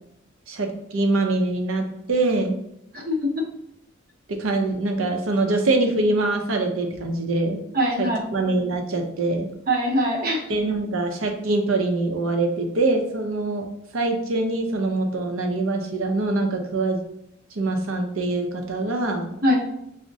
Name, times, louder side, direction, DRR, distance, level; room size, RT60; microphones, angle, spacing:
voice 1, 0.5-2.5 4.4-7.6 8.0-9.5 10.5-13.7 13.9-17.0 17.5-19.3, right 2 dB, 85° right, 4 dB, 0.6 m, -24 dB
voice 2, 2.9-3.4 7.7-8.2 9.7-10.4 19.4-19.6, equal, 45° right, -1 dB, 0.8 m, -22 dB
6.0 x 2.1 x 2.6 m, 0.77 s
head